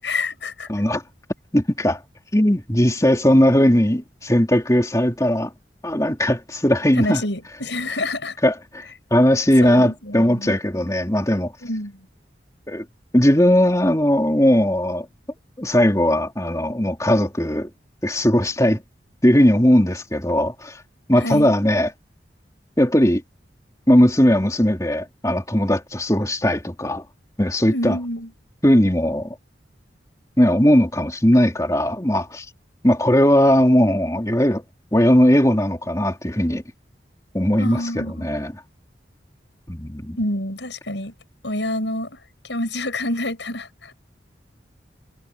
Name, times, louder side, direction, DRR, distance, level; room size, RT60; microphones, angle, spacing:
voice 1, 0.0-0.7 7.0-8.4 9.6-10.6 11.6-12.1 21.2-21.5 27.7-28.3 37.6-38.3 40.1-41.1 41.4-42.2 42.5-43.9, left 1 dB, 75° left, 7.2 m, -27 dB
voice 2, 0.7-1.0 1.5-2.0 2.3-5.5 5.8-7.2 8.4-8.8 9.1-11.5 12.7-12.9 13.1-15.1 15.6-17.7 18.0-18.8 19.2-20.8 21.1-21.9 22.8-23.2 23.9-27.0 27.4-28.0 28.6-29.4 30.4-32.5 32.8-34.6 34.9-36.6 37.3-38.6 39.7-40.2, equal, 15° left, 3.0 m, -18 dB
head